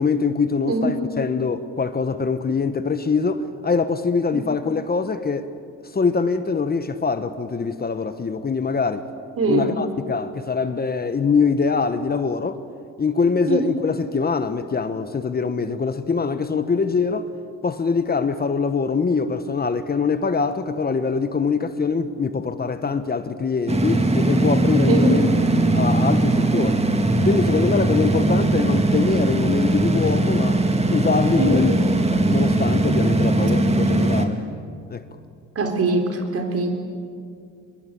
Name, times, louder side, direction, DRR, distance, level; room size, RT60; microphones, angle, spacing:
voice 1, 0.0-5.5 5.9-9.1 9.5-12.6 13.0-17.3 17.6-25.2 25.7-26.8 27.2-30.6 30.9-31.7 32.1-34.4 34.9-35.0, left 5 dB, 30° left, 1.2 m, -23 dB
voice 2, 9.4-9.8 13.5-13.7 24.9-25.2 31.4-31.8 35.5-36.7, right 2 dB, 50° right, 4.3 m, -22 dB
sound 1, 23.7-34.3, right 2 dB, 20° right, 2.3 m, -20 dB
24.5 x 21.5 x 8.7 m
cardioid pair, 90°, 30 cm